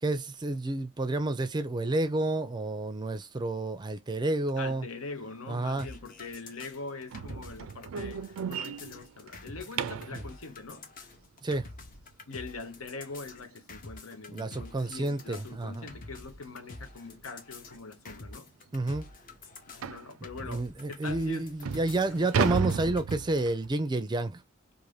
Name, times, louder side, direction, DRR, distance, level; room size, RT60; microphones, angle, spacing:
voice 1, 0.0-4.9 5.5-5.9 10.1-10.2 11.4-11.7 14.3-15.9 18.7-19.1 20.5-24.4, right 2 dB, 20° right, 0.4 m, -30 dB
voice 2, 4.6-8.2 8.5-10.9 12.3-18.5 19.7-20.6 20.9-21.6 22.1-22.3, left 3 dB, 90° left, 0.8 m, -43 dB
sound 1, 5.8-23.1, left 2 dB, 40° left, 0.7 m, -47 dB
sound 2, 7.1-10.2 13.0-13.1 13.6-13.8 14.1-14.2 14.7-14.8 15.9-16.1 16.4-16.6 17.3-17.4 17.7-17.8 18.3-18.4 19.8-20.1 20.8-20.9 21.4-23.7, right 6 dB, 85° right, 0.4 m, -33 dB
2.6 x 2.6 x 3.2 m
head